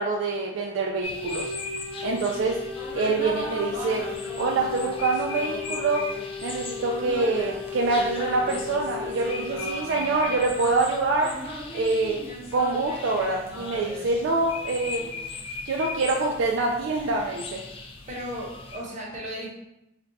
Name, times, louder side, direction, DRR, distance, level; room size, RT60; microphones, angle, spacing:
voice 1, 0.0-1.5 2.0-2.6 3.0-4.0 4.4-6.0 6.4-11.3 11.7-12.2 12.5-15.1 15.7-17.6, right 3 dB, 70° right, 0 dB, 0.3 m, -25 dB
sound 1, 1.0-18.8, left 4 dB, 30° left, 0.3 m, -39 dB
Wind instrument woodwind instrument, 1.1-9.7, left 4 dB, 85° left, 0.7 m, -36 dB
sound 2, 2.7-6.3 6.8-15.3, equal, 50° left, 0.9 m, -39 dB
voice 2, 18.1-19.5, equal, 40° right, -4 dB, 0.8 m, -35 dB
2.4 x 2.2 x 3.9 m, 0.88 s
head